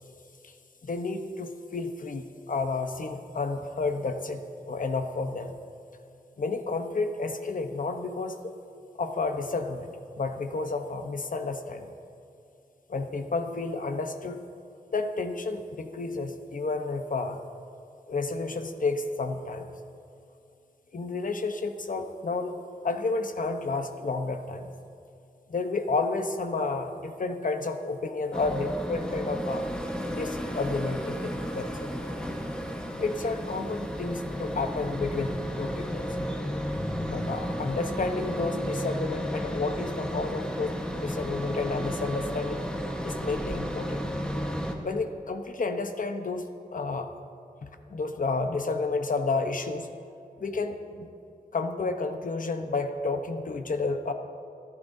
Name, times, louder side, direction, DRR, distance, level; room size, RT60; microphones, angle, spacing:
voice 1, 0.8-4.4 4.7-5.5 6.4-8.5 9.0-11.9 12.9-14.4 14.9-17.4 18.1-19.6 20.9-22.5 22.8-24.7 25.5-29.7 30.1-31.9 33.0-36.2 37.1-42.6 43.0-44.0 44.8-46.4 46.7-47.1 47.6-49.9 50.4-51.1 51.5-54.1, left 3 dB, 60° left, 6 dB, 1.0 m, -31 dB
sound 1, 28.3-44.7, equal, 5° left, 1.3 m, -33 dB
28.5 x 11.0 x 2.7 m, 2.6 s
wide cardioid pair, 110°, 16 cm